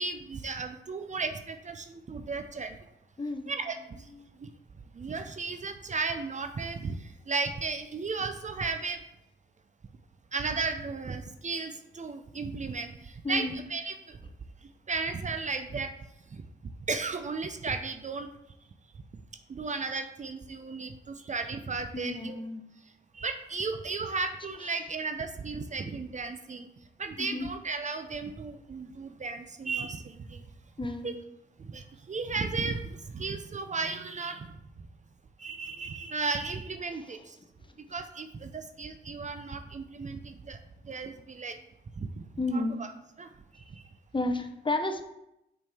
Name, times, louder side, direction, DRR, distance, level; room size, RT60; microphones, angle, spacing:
voice 1, 0.0-2.8 3.5-4.0 4.4-4.5 4.9-7.0 7.3-9.0 10.3-14.2 14.9-15.9 16.3-16.4 16.9-18.3 19.5-22.4 23.1-26.7 27.0-30.4 31.0-31.1 31.6-34.5 35.4-37.4 37.9-40.6 40.8-41.6 42.0-42.2 42.5-42.6 43.2-43.3 43.7-43.8, right 4 dB, 35° right, 7 dB, 0.6 m, -34 dB
voice 2, 13.2-13.6 21.9-22.6 27.2-27.5 30.8-31.1 42.4-42.8 44.1-45.0, left 2 dB, 25° left, 7 dB, 0.8 m, -31 dB
5.4 x 5.1 x 3.5 m, 0.84 s
supercardioid pair, 50°, 21 cm